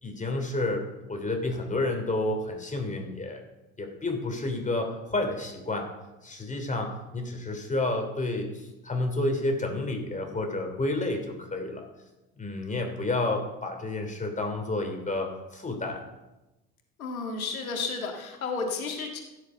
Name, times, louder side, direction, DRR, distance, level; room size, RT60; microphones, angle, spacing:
voice 1, 0.0-3.4 3.8-5.9 6.2-11.8 12.4-16.0, left 2 dB, 20° left, 3 dB, 3.1 m, -30 dB
voice 2, 17.0-19.2, left 4 dB, 85° left, 3 dB, 2.1 m, -32 dB
15.5 x 8.0 x 5.6 m, 1.0 s
hypercardioid pair, 70°, 41 cm